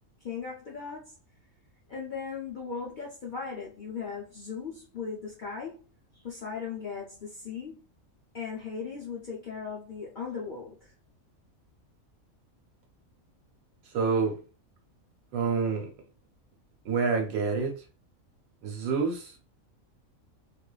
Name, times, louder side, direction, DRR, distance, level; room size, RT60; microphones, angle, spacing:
voice 1, 0.2-1.1 1.9-5.8 6.2-7.8 8.3-10.9, left 5 dB, 60° left, 0.5 m, -38 dB
voice 2, 13.9-14.3 15.3-15.9 16.9-17.7 18.6-19.4, right 5 dB, 85° right, 1.2 m, -27 dB
2.5 x 2.2 x 2.3 m
omnidirectional pair, 1.4 m